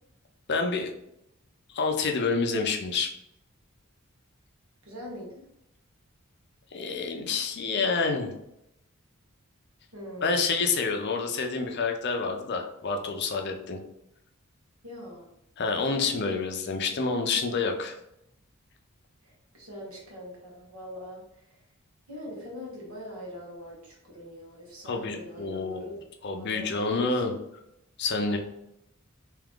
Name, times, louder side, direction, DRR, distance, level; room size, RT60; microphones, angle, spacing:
voice 1, 0.5-0.9 1.7-3.1 6.7-8.3 10.2-13.8 15.6-18.0 24.9-25.8 26.2-27.3 28.0-28.4, left 4 dB, 55° left, 3 dB, 0.6 m, -28 dB
voice 2, 4.8-5.5 9.9-10.7 14.8-15.3 19.2-21.7 22.1-26.0 26.4-27.4, equal, 75° right, -2 dB, 1.5 m, -43 dB
3.5 x 2.9 x 3.6 m, 0.81 s
head